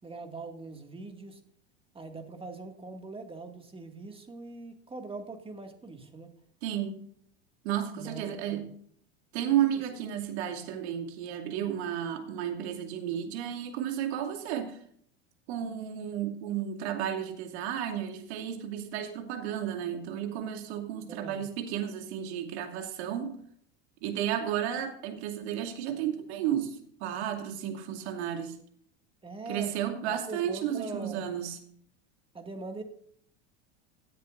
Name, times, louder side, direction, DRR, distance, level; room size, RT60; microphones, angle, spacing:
voice 1, 0.0-1.4 1.9-6.3 8.0-8.7 9.6-9.8 21.1-21.4 29.2-29.7 30.1-31.3 32.3-32.8, right 3 dB, 15° right, 5 dB, 2.1 m, -42 dB
voice 2, 6.6-7.0 7.6-8.7 9.3-14.8 15.5-23.4 24.0-28.6 29.5-31.6, right 10 dB, 75° right, 4 dB, 2.5 m, -33 dB
17.5 x 9.9 x 2.6 m, 0.62 s
hypercardioid pair, 100°, 33 cm